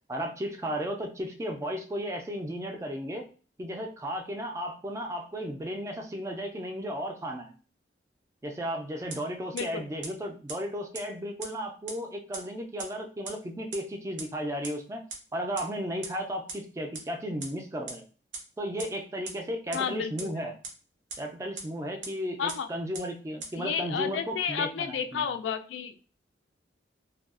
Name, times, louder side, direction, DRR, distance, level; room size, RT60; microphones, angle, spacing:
voice 1, 0.1-3.3 3.6-7.5 8.4-15.0 15.3-18.1 18.6-20.5 21.2-25.3, equal, 15° right, 3 dB, 0.3 m, -34 dB
sound 1, 9.1-9.2 9.6-9.7 10.0-10.1 10.5-10.6 10.9-11.0 11.4-11.5 11.9-12.0 12.3-12.4 12.8-12.9 13.3-13.4 13.7-13.8 14.2-14.3 14.6-14.7 15.1-15.2 15.6-15.7 16.0-16.1 16.5-16.6 16.9-17.0 17.4-17.5 17.9-18.0 18.3-18.4 18.8-18.9 19.3-19.4 19.7-19.8 20.2-20.3 20.6-20.7 21.1-21.2 21.6-21.7 22.0-22.1 22.5-22.6 22.9-23.0 23.4-23.5, right 4 dB, 85° right, 0.7 m, -37 dB
voice 2, 9.5-9.8 19.7-20.4 22.4-22.7 23.6-25.9, left 7 dB, 90° left, 9 dB, 0.3 m, -31 dB
2.6 x 2.3 x 2.4 m, 0.38 s
head